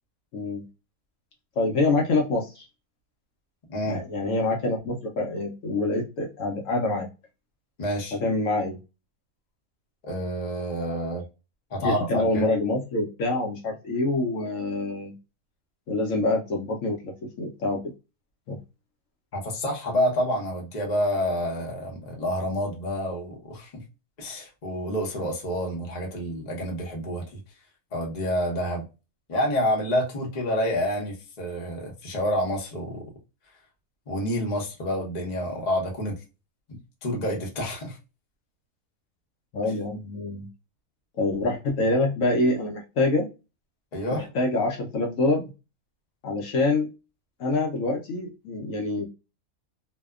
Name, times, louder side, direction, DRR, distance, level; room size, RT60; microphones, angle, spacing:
voice 1, 0.3-0.6 1.6-2.6 3.8-7.1 8.1-8.8 11.8-15.1 15.9-17.0 17.4-17.8 18.5-18.6 39.5-40.5 41.2-43.3 44.1-45.5 46.2-46.9 47.4-49.1, left 2 dB, 65° left, 1.0 m, -26 dB
voice 2, 3.7-4.0 7.8-8.2 10.1-11.2 11.7-12.5 19.3-23.8 24.2-27.4 27.9-28.8 29.3-33.1 34.1-36.2 37.0-38.0 43.9-44.3, equal, 35° left, 0.8 m, -28 dB
2.7 x 2.2 x 2.3 m
omnidirectional pair, 1.6 m